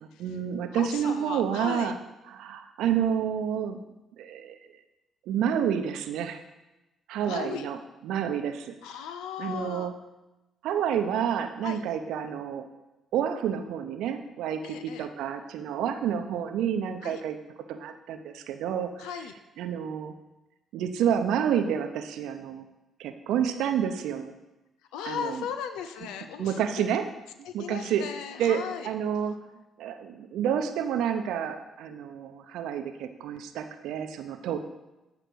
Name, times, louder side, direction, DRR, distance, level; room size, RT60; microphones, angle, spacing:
voice 1, 0.2-1.9 2.3-3.8 4.2-4.6 5.3-6.4 7.1-7.8 8.0-8.7 9.4-9.9 10.6-12.7 13.1-17.4 17.7-19.1 19.6-20.1 20.7-22.7 23.0-24.3 25.0-25.4 26.4-27.1 27.5-28.1 28.4-29.4 29.8-34.6, right 8 dB, 80° right, 7 dB, 0.7 m, -29 dB
voice 2, 0.7-1.9 7.2-7.7 8.8-9.9 11.6-11.8 14.6-15.1 17.0-17.2 19.0-19.3 24.9-26.9 27.4-28.9, left 8 dB, 85° left, 8 dB, 0.5 m, -37 dB
8.3 x 4.9 x 6.2 m, 1.0 s
supercardioid pair, 65°, 0 cm